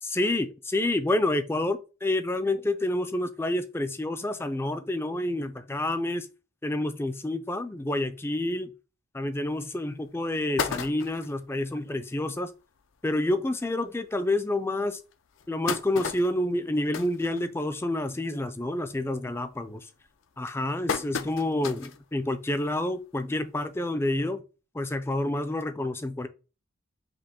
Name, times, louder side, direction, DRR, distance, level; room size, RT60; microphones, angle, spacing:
voice 1, 0.0-6.3 6.6-8.7 9.1-12.5 13.0-15.0 15.5-19.9 20.4-24.4 24.7-26.3, left 1 dB, 10° left, 0.4 m, -28 dB
sound 1, 9.5-9.6 10.0-10.1 10.3-11.4 12.0-12.1 12.3-12.4 12.8-12.9 13.7-13.8 14.3-14.4 15.1-18.0 18.3-18.7 19.0-19.4 20.0-22.0 22.5-22.6 23.8-23.9, left 6 dB, 70° left, 0.5 m, -34 dB
5.2 x 2.1 x 4.2 m
head